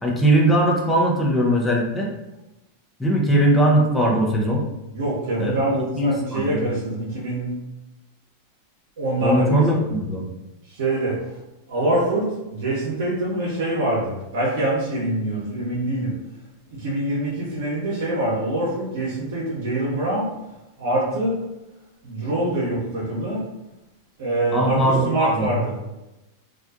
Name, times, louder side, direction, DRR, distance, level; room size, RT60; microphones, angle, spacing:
voice 1, 0.0-2.1 3.0-4.6 5.4-6.7 9.2-10.2 24.5-25.5, right 1 dB, 10° left, -2 dB, 0.6 m, -20 dB
voice 2, 4.9-7.5 9.0-9.6 10.7-11.2 11.7-12.2 12.5-16.1 16.7-20.2 20.8-21.3 22.0-23.4 24.2-25.7, right 1 dB, 60° right, -6 dB, 0.8 m, -24 dB
2.4 x 2.2 x 2.5 m, 0.96 s
figure-of-eight pair, 90°, 0 cm